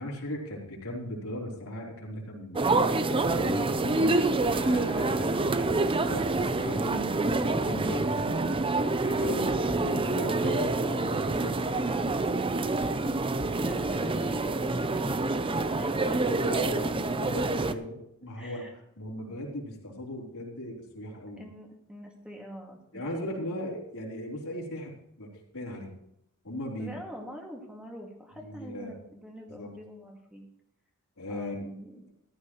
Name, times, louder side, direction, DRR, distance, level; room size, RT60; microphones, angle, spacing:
voice 1, 0.0-2.6 3.1-4.0 4.5-8.4 8.9-12.0 16.2-21.5 22.9-24.9 25.2-25.9 26.4-27.0 28.4-29.0 29.5-29.7 31.2-31.6, left 1 dB, 75° left, -2 dB, 3.8 m, -38 dB
sound 1, 2.6-17.7, right 2 dB, 25° right, 0.6 m, -27 dB
voice 2, 4.8-5.3 13.2-16.1 16.7-17.0 17.4-17.8 18.4-18.7 21.4-23.5 26.8-30.5 31.3-32.1, equal, 5° right, 0 dB, 2.2 m, -45 dB
14.5 x 12.5 x 3.1 m, 0.78 s
head